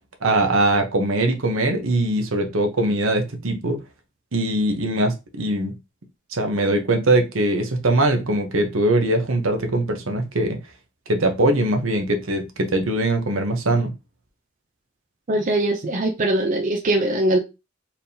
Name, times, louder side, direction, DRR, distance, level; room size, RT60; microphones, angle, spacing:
voice 1, 0.2-3.8 4.3-5.7 6.3-10.6 11.1-13.9, right 1 dB, 70° right, 1.0 m, -21 dB
voice 2, 15.3-17.4, right 1 dB, 40° right, 0.6 m, -21 dB
4.3 x 3.5 x 2.8 m
head